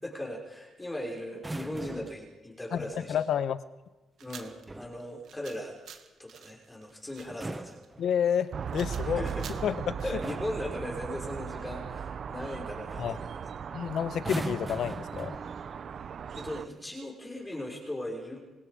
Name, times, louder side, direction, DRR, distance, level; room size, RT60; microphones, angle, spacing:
voice 1, 0.0-3.1 4.2-5.8 6.2-7.8 9.1-9.5 10.0-13.5 16.4-18.4, left 1 dB, 15° left, -1 dB, 5.8 m, -38 dB
sound 1, 1.3-2.3 4.4-5.0 7.2-8.5 9.6-9.8 10.2-10.7 12.4-12.6 12.9-13.2 14.1-15.8 16.7-17.0, right 2 dB, 15° right, 1.1 m, -40 dB
voice 2, 2.7-3.6 8.0-9.2 9.6-10.0 13.0-13.2 13.7-15.4, left 8 dB, 65° left, 13 dB, 1.1 m, -29 dB
sound 2, 4.2-10.5, right 8 dB, 70° right, 2.1 m, -49 dB
sound 3, 8.5-16.6, right 7 dB, 55° right, 0.9 m, -38 dB
29.0 x 17.5 x 5.1 m, 1.1 s
cardioid pair, 90°, 0 cm